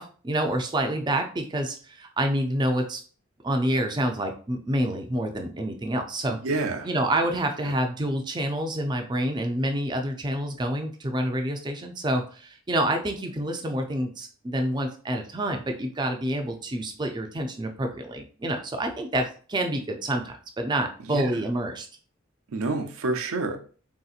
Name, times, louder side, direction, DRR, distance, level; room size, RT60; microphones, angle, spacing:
voice 1, 0.0-3.0 3.4-6.4 6.8-21.9, right 1 dB, 20° right, 4 dB, 0.4 m, -28 dB
voice 2, 6.4-6.9 21.1-21.2 22.5-23.6, right 3 dB, 80° right, 4 dB, 0.5 m, -27 dB
3.5 x 2.7 x 2.4 m, 0.41 s
head